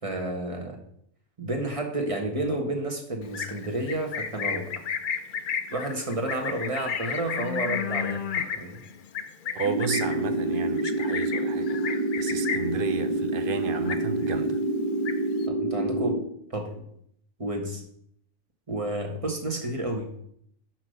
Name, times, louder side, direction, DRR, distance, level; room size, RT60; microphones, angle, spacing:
voice 1, 0.0-0.8 1.4-4.8 5.7-8.8 15.5-16.2 16.5-16.8 17.4-17.8 18.7-20.1, right 1 dB, 25° right, 1.4 m, -31 dB
Livestock farm animals working animals, 3.2-12.8 13.2-13.5 13.7-14.4 14.7-15.4, left 7 dB, 55° left, 0.6 m, -32 dB
voice 2, 9.5-11.8 12.2-14.6, right 5 dB, 55° right, 0.7 m, -33 dB
sound 1, 9.6-16.2, right 2 dB, 5° left, 1.2 m, -27 dB
6.2 x 6.0 x 6.6 m
omnidirectional pair, 1.4 m